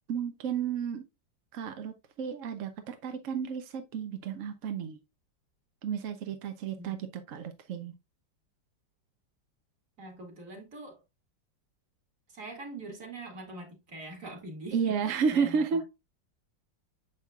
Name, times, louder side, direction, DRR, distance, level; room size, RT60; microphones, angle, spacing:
voice 1, 0.1-1.0 1.5-5.0 5.8-7.9 14.7-15.8, right 6 dB, 60° right, 0.9 m, -32 dB
voice 2, 10.0-11.0 12.3-15.8, right 2 dB, 45° right, 2.5 m, -43 dB
6.9 x 6.4 x 2.3 m
omnidirectional pair, 2.0 m